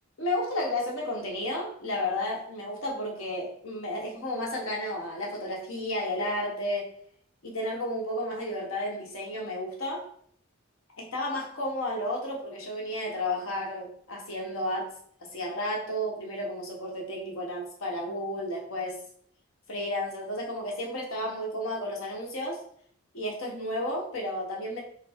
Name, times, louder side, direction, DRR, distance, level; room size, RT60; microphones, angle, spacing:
voice 1, 0.2-6.9 7.4-10.1 11.0-14.9 15.2-19.0 19.7-22.6 23.1-24.8, left 1 dB, 75° left, -1 dB, 1.1 m, -32 dB
5.7 x 2.1 x 3.4 m, 0.63 s
head